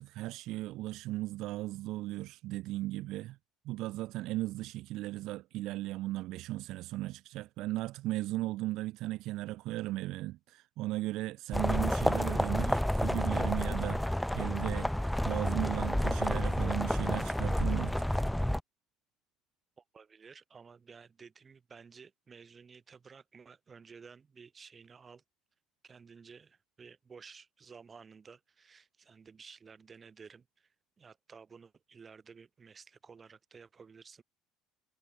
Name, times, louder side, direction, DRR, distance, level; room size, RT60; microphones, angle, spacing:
voice 1, 0.0-3.4 3.6-14.9 15.2-18.2, right 17 dB, 65° right, 2.5 m, -36 dB
sound 1, 11.5-18.6, left 1 dB, 5° left, 1.0 m, -30 dB
voice 2, 19.8-25.2 25.8-34.2, right 5 dB, 25° right, 4.8 m, -54 dB
cardioid pair, 120°, 0 cm